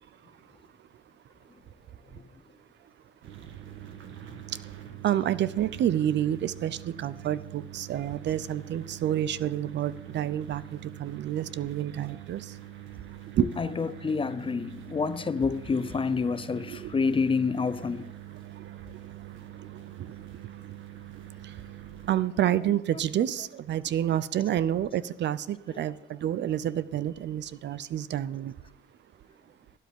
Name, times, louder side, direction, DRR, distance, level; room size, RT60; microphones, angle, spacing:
sound 1, 3.2-22.2, right 12 dB, 80° right, 1.4 m, -45 dB
voice 1, 5.0-10.6 11.0-12.4 13.4-13.7 16.7-16.9 22.1-28.5, right 11 dB, 65° right, 0.6 m, -28 dB
voice 2, 13.6-18.0, left 5 dB, 25° left, 0.5 m, -28 dB
12.5 x 9.3 x 3.6 m
cardioid pair, 90°, 20 cm